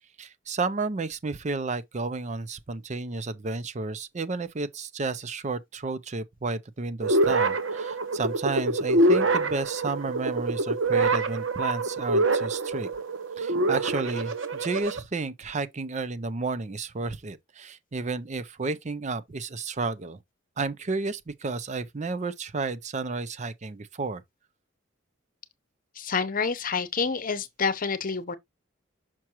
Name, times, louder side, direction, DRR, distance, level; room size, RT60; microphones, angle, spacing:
voice 1, 0.2-12.9 13.4-20.2 20.6-24.2, right 3 dB, 35° right, 0.6 m, -32 dB
sound 1, 7.0-15.0, right 2 dB, 80° right, 1.1 m, -25 dB
voice 2, 26.0-28.4, left 5 dB, 45° left, 0.8 m, -28 dB
6.0 x 5.8 x 3.0 m
head